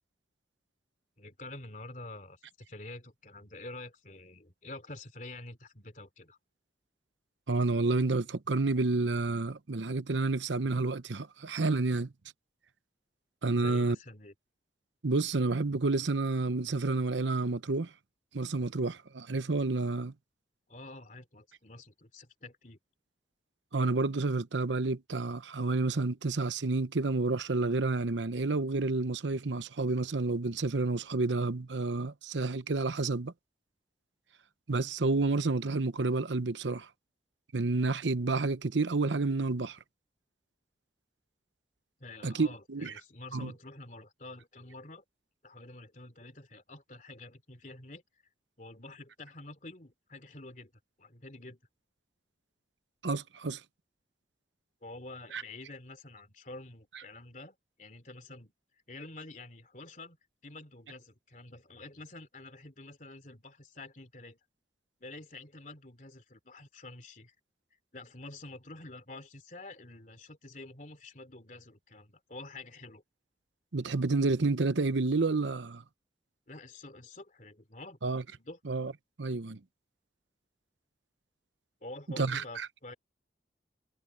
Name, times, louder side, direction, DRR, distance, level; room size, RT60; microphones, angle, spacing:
voice 1, 1.2-6.4 13.5-14.3 20.7-22.8 42.0-45.0 45.4-48.0 48.6-50.7 51.0-51.6 54.8-58.5 58.9-60.2 60.4-64.4 65.0-67.3 67.9-73.0 76.5-78.0 78.4-78.6 81.8-82.9, left 2 dB, 45° left, 3.1 m, -48 dB
voice 2, 7.5-12.1 13.4-14.0 15.0-17.9 18.3-20.1 23.7-33.3 34.7-36.9 37.5-39.8 42.2-42.9 43.3-43.5 53.0-53.6 55.3-55.4 73.7-75.8 78.0-78.2 78.6-78.9 79.2-79.6 82.2-82.7, right 3 dB, 90° right, 0.9 m, -30 dB
head